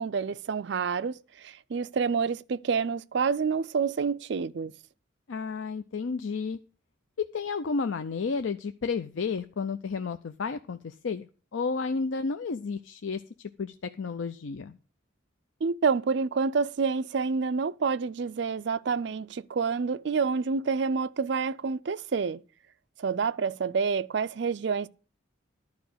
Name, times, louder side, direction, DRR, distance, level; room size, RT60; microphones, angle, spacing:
voice 1, 0.0-4.7 15.6-22.4 23.0-24.9, right 5 dB, 60° right, 0.4 m, -28 dB
voice 2, 5.3-6.6 7.2-14.8, left 4 dB, 75° left, 0.5 m, -32 dB
11.5 x 4.8 x 7.8 m
head